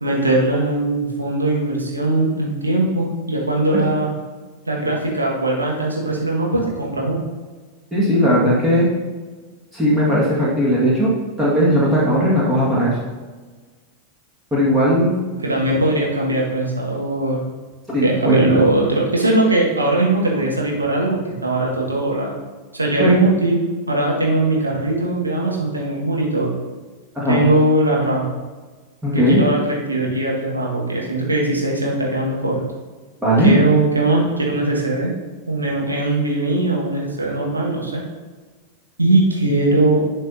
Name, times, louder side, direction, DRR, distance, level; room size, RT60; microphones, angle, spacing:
voice 1, 0.0-4.1 4.7-7.2 15.3-17.4 18.0-22.3 22.7-26.5 27.3-28.3 29.1-32.6 33.4-35.1 35.5-38.0 39.0-40.0, right 2 dB, 80° right, -2 dB, 1.6 m, -20 dB
voice 2, 7.9-8.9 9.7-13.0 14.5-15.2 17.9-18.4 23.0-23.1 27.2-27.4 29.0-29.4 33.2-33.5, equal, 10° right, -7 dB, 1.8 m, -17 dB
11.5 x 4.5 x 2.7 m, 1.3 s
figure-of-eight pair, 90°, 0 cm